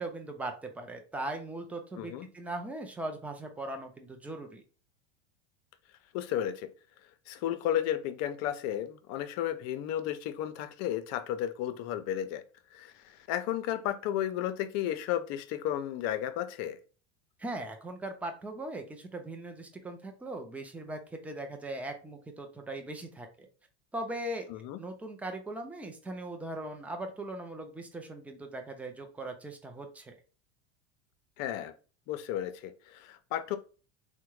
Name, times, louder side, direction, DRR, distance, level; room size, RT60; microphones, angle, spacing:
voice 1, 0.0-4.6 17.4-23.5 23.9-24.5 24.8-30.2, right 2 dB, 5° right, 0.5 m, -39 dB
voice 2, 2.0-2.3 6.1-6.7 7.3-12.4 12.7-16.8 24.5-24.8 31.4-31.7 32.1-33.6, left 11 dB, 50° left, 0.5 m, -33 dB
3.5 x 2.1 x 3.0 m
supercardioid pair, 105°, 33 cm